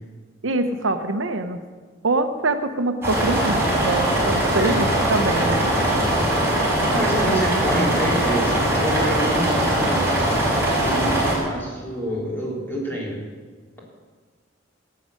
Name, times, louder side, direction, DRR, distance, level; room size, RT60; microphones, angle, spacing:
voice 1, 0.4-1.6 2.0-5.6, right 2 dB, 85° right, 8 dB, 0.9 m, -24 dB
sound 1, 3.0-11.4, right 1 dB, 15° right, 4.3 m, -21 dB
voice 2, 5.4-6.0 6.9-10.2 10.7-13.2, equal, 10° left, -4 dB, 3.7 m, -27 dB
17.5 x 7.8 x 6.4 m, 1.5 s
head